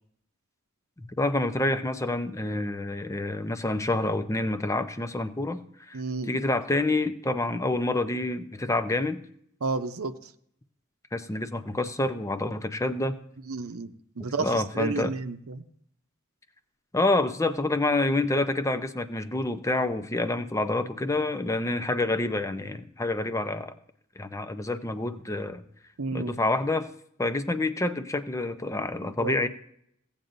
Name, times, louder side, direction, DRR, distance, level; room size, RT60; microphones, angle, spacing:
voice 1, 1.2-5.6 5.9-9.2 11.1-13.2 14.4-15.1 16.9-23.7 24.2-25.6 26.1-26.9 27.2-29.5, left 2 dB, 15° left, 10 dB, 0.6 m, -27 dB
voice 2, 5.9-6.4 9.6-10.3 13.5-15.6 26.0-26.4 29.0-29.5, right 3 dB, 85° right, 8 dB, 0.7 m, -32 dB
16.5 x 8.7 x 2.6 m, 0.68 s
head